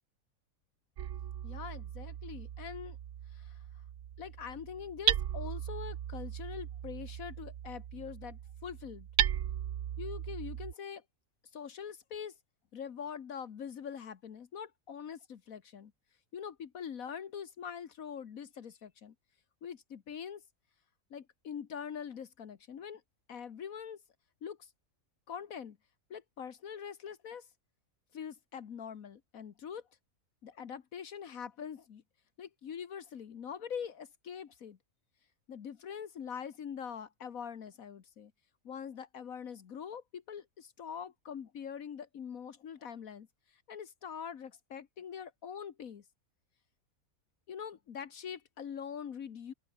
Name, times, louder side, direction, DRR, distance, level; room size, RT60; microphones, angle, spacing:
Hammer, 1.0-10.7, right 10 dB, 60° right, 1.1 m, -37 dB
voice 1, 1.4-3.0 3.3-3.6 4.2-9.1 10.0-11.0 11.5-12.4 12.7-15.9 16.3-19.1 19.6-20.4 21.1-23.0 23.3-24.0 24.4-24.7 25.3-25.8 26.1-27.5 28.1-29.8 30.4-32.0 32.4-34.8 35.5-38.3 38.6-43.3 43.5-46.0 47.5-49.5, left 7 dB, 75° left, 1.6 m, -43 dB
open air
omnidirectional pair, 1.5 m